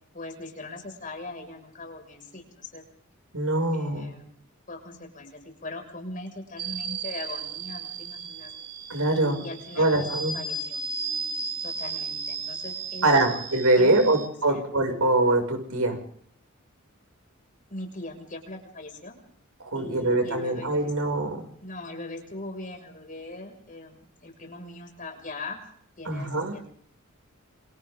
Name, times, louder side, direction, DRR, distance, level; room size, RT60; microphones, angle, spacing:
voice 1, 0.1-2.8 3.7-4.3 4.7-8.5 9.1-10.1 10.3-10.8 11.6-13.4 13.8-14.1 14.5-14.6 17.7-19.2 19.7-20.9 21.6-25.6 26.0-26.7, left 2 dB, 40° left, 3 dB, 6.5 m, -40 dB
voice 2, 3.3-4.1 8.9-9.4 9.8-10.4 13.0-16.0 19.6-21.4 26.0-26.6, right 2 dB, 80° right, 3 dB, 6.9 m, -23 dB
sound 1, 6.6-14.3, right 4 dB, 40° right, 3.4 m, -35 dB
28.5 x 27.5 x 3.9 m, 0.64 s
head